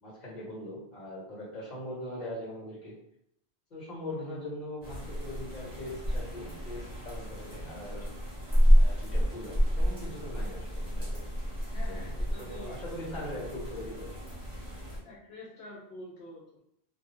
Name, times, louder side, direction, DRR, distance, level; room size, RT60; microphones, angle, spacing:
voice 1, 0.0-3.0 3.7-8.1 8.8-11.3 11.9-14.2, left 1 dB, 45° left, -5 dB, 1.2 m, -41 dB
sound 1, 4.8-15.0, equal, 25° right, 1.1 m, -29 dB
voice 2, 11.7-12.8 13.1-13.3 15.0-16.6, left 2 dB, 75° left, -4 dB, 0.9 m, -47 dB
2.3 x 2.3 x 3.0 m, 0.71 s
omnidirectional pair, 1.1 m